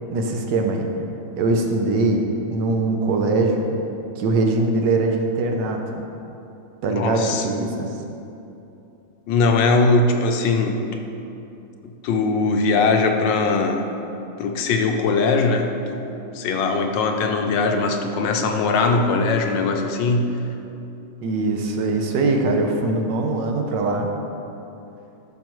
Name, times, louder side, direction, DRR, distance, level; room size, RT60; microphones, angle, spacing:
voice 1, 0.1-0.9 1.4-2.2 2.5-3.8 4.2-5.8 6.8-8.0 21.2-24.1, right 3 dB, 70° right, 3 dB, 1.3 m, -22 dB
voice 2, 6.9-7.5 9.3-10.8 11.8-13.8 14.4-20.4, left 3 dB, 75° left, 3 dB, 1.3 m, -20 dB
12.0 x 6.2 x 3.1 m, 2.8 s
omnidirectional pair, 2.0 m